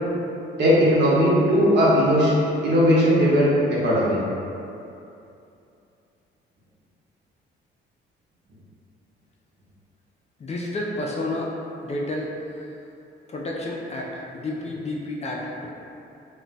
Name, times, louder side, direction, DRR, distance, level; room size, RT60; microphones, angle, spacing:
voice 1, 0.6-2.3 2.6-4.2, equal, 60° right, -6 dB, 0.8 m, -18 dB
voice 2, 10.4-11.5 11.8-12.7 13.3-15.7, left 1 dB, 35° left, -2 dB, 0.4 m, -30 dB
2.2 x 2.2 x 3.9 m, 2.7 s
cardioid pair, 90°, 20 cm